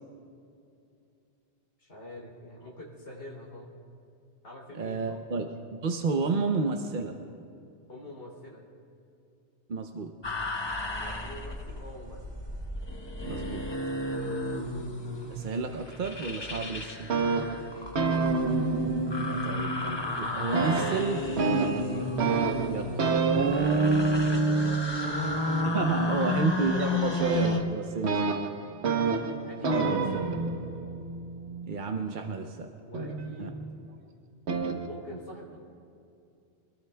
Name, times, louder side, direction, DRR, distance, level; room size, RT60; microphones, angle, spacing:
voice 1, 1.8-3.7 4.4-5.2 7.9-8.6 10.8-12.2 17.4-18.3 24.1-25.4 25.7-26.7 29.4-30.2 32.8-33.6 34.8-35.6, left 1 dB, 85° left, -4 dB, 3.6 m, -45 dB
voice 2, 4.7-7.2 9.7-10.1 13.2-13.6 15.3-17.1 19.2-19.7 20.2-22.1 22.7-23.0 25.6-28.2 31.6-32.7 33.4-33.5, right 4 dB, 50° right, 4 dB, 0.9 m, -31 dB
sound 1, 10.2-27.6, left 2 dB, 25° left, 1.1 m, -33 dB
sound 2, 16.9-20.2 20.5-32.1 32.9-33.8 34.5-34.9, right 4 dB, 75° right, 1.3 m, -28 dB
26.5 x 21.0 x 2.3 m, 2.6 s
omnidirectional pair, 1.1 m